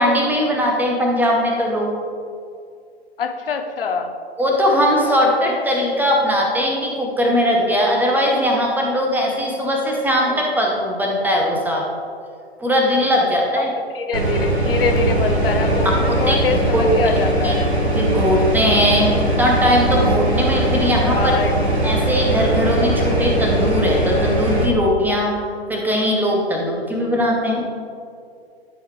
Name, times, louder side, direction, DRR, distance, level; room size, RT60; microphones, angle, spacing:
voice 1, 0.0-2.0 4.4-11.8 12.6-13.7 16.3-16.4 16.7-16.8 17.4-17.5 17.9-21.3 21.8-25.4 25.7-27.6, equal, 5° right, -1 dB, 0.8 m, -19 dB
voice 2, 3.2-4.1 5.1-5.3 10.2-10.4 13.2-13.3 13.5-17.7 21.1-21.5, left 5 dB, 60° left, 6 dB, 0.8 m, -24 dB
sound 1, 14.1-24.7, right 1 dB, 85° right, 1.2 m, -20 dB
11.0 x 4.8 x 3.1 m, 2.3 s
figure-of-eight pair, 110°, 32 cm